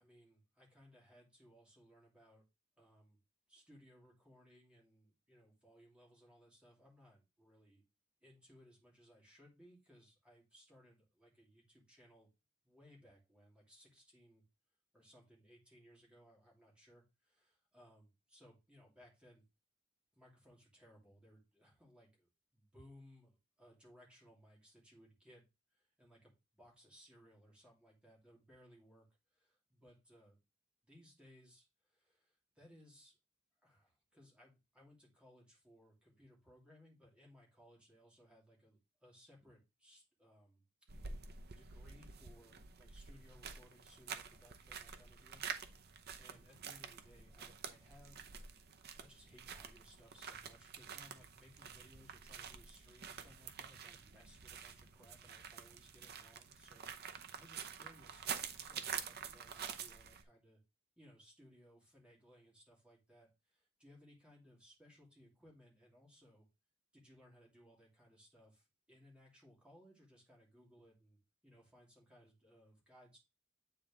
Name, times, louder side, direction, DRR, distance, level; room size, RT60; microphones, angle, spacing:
voice 1, 0.0-2.4 2.8-3.2 3.5-7.8 8.2-12.3 12.6-14.4 14.9-19.5 20.1-25.4 25.7-29.1 29.3-30.4 30.8-33.2 33.6-40.6 41.6-48.3 48.6-48.7 49.0-60.6 61.0-66.5 66.9-73.2, equal, 5° right, -3 dB, 2.4 m, -64 dB
sound 1, 40.9-60.2, right 7 dB, 50° right, 0.8 m, -48 dB
9.0 x 4.0 x 3.6 m, 0.26 s
head